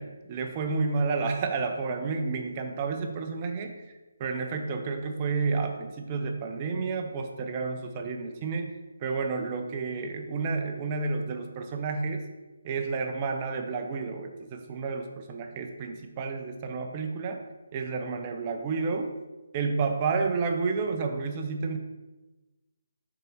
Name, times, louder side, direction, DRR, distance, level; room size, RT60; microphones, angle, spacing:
voice 1, 0.0-3.9 4.2-12.2 12.6-17.4 17.7-19.1 19.5-21.8, right 4 dB, 25° right, 4 dB, 0.7 m, -30 dB
5.4 x 4.8 x 5.5 m, 1.1 s
figure-of-eight pair, 145°, 0 cm